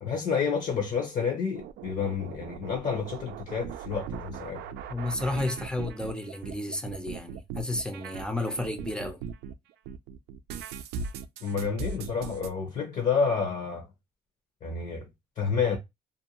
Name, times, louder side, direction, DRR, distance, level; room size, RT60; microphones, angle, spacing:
voice 1, 0.0-4.6 11.4-13.9 14.6-15.1 15.4-15.8, left 6 dB, 50° left, 0.8 m, -29 dB
sound 1, 1.5-9.5 9.9-12.5, right 6 dB, 75° right, 0.4 m, -39 dB
voice 2, 4.9-9.2, left 2 dB, 5° left, 0.6 m, -32 dB
2.5 x 2.2 x 2.8 m
cardioid pair, 110°, 17 cm